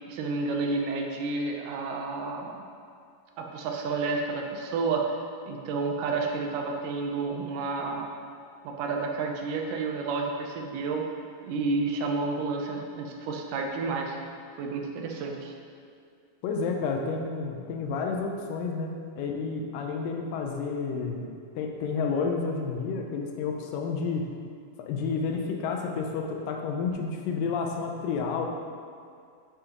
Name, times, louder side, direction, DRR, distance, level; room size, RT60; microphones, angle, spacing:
voice 1, 0.1-2.6 3.4-5.1 5.5-8.1 8.6-11.0 11.4-14.2 14.6-15.5, right 3 dB, 80° right, 2 dB, 2.3 m, -30 dB
voice 2, 16.4-21.3 21.6-24.3 24.8-28.5, left 4 dB, 85° left, 2 dB, 2.4 m, -30 dB
7.8 x 6.4 x 2.9 m, 2.3 s
omnidirectional pair, 3.8 m